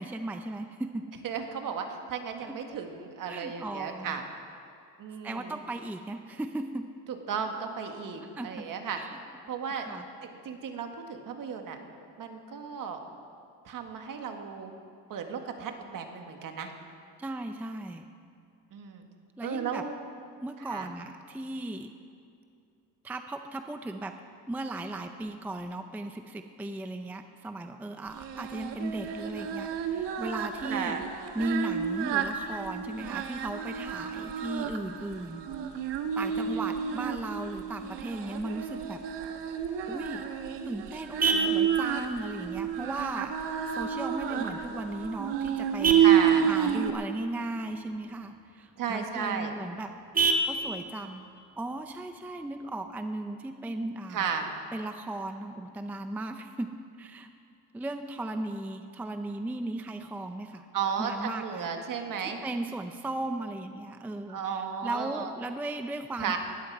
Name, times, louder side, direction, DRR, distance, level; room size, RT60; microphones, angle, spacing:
voice 1, 0.0-1.1 2.4-2.6 3.3-4.2 5.2-6.9 8.4-8.6 8.9-9.2 9.8-10.1 17.2-18.1 19.4-19.8 20.4-21.9 23.0-24.1 24.5-31.0 31.3-35.4 36.2-39.0 39.9-40.3 40.7-43.4 43.7-46.0 46.4-49.9 50.5-51.2 51.6-54.3 54.7-56.7 57.0-57.3 57.7-60.7 61.0-61.7 62.4-66.4, right 2 dB, 5° right, 7 dB, 0.4 m, -36 dB
voice 2, 1.2-4.2 5.0-5.5 7.1-9.0 9.5-9.9 10.2-11.8 12.2-13.0 13.7-14.7 15.1-16.7 18.7-19.0 19.4-19.9 20.6-20.9 30.7-31.0 36.3-36.6 41.3-41.5 44.3-44.7 46.0-46.5 48.8-49.5 54.1-54.5 60.7-62.4 64.3-65.3 66.2-66.4, right 6 dB, 50° right, 4 dB, 1.7 m, -34 dB
Singing, 28.2-46.9, right 9 dB, 85° right, 1.3 m, -30 dB
Vehicle horn car horn honking, 39.9-52.9, right 3 dB, 20° right, 1.2 m, -35 dB
19.5 x 13.5 x 4.7 m, 2.5 s
cardioid pair, 145°, 41 cm